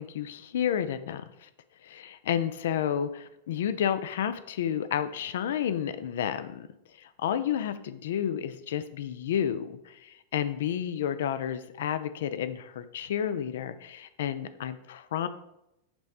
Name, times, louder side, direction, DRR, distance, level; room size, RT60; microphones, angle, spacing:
voice 1, 0.0-1.5 1.8-6.7 7.0-15.3, left 9 dB, 60° left, 11 dB, 0.4 m, -31 dB
6.0 x 3.2 x 5.5 m, 0.85 s
figure-of-eight pair, 90°, 0 cm